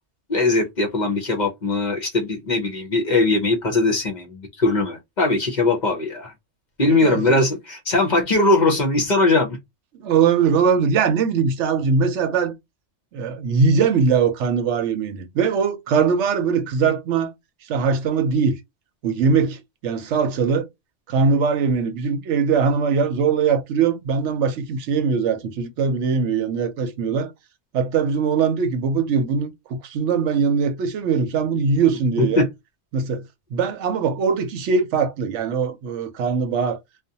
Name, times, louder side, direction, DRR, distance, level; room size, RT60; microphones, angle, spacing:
voice 1, 0.3-6.3 6.8-9.6 32.2-32.5, left 2 dB, 50° left, 0.7 m, -20 dB
voice 2, 6.8-7.4 9.9-12.5 13.1-17.3 17.7-18.6 19.0-20.6 21.1-27.3 27.7-32.4 32.9-33.2 33.5-36.8, right 5 dB, 80° right, 0.9 m, -21 dB
2.4 x 2.2 x 2.6 m
omnidirectional pair, 1.2 m